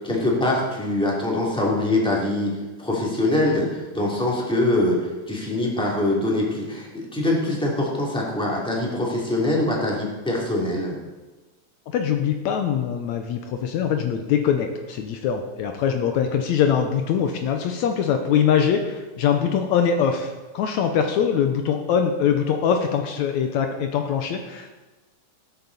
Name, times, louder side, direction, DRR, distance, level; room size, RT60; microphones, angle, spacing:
voice 1, 0.0-2.5 2.8-5.0 5.3-11.0, left 1 dB, ahead, -4 dB, 2.6 m, -23 dB
voice 2, 11.9-24.7, left 7 dB, 75° left, 5 dB, 2.0 m, -23 dB
19.0 x 8.3 x 4.1 m, 1.2 s
omnidirectional pair, 3.5 m